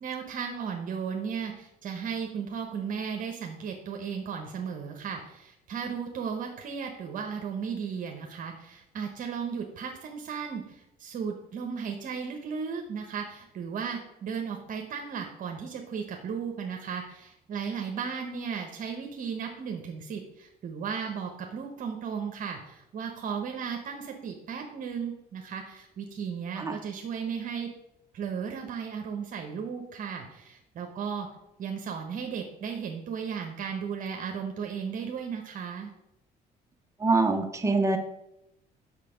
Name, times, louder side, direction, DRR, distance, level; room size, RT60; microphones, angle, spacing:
voice 1, 0.0-27.7 28.1-31.3 31.6-35.9, right 6 dB, 55° right, 3 dB, 1.1 m, -35 dB
voice 2, 37.0-38.0, right 3 dB, 15° right, 5 dB, 1.0 m, -24 dB
6.7 x 6.2 x 5.0 m, 0.85 s
cardioid pair, 110°, 17 cm